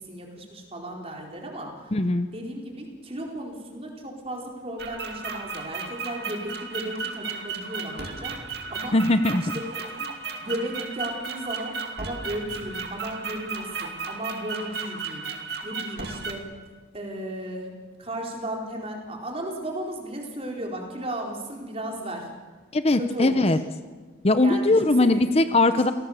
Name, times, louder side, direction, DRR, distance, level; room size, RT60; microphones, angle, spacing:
voice 1, 0.0-1.9 2.3-8.4 8.7-9.0 9.4-10.1 10.4-15.3 15.6-16.5 16.9-17.7 18.0-22.3 22.9-23.6 24.4-25.2, right 1 dB, 30° right, 1 dB, 4.2 m, -35 dB
voice 2, 1.9-2.3 8.9-9.4 22.7-23.6 24.2-25.9, left 2 dB, 35° left, 10 dB, 0.8 m, -20 dB
sound 1, 4.8-16.3, right 4 dB, 55° right, 2.5 m, -35 dB
28.5 x 18.0 x 7.3 m, 1.4 s
head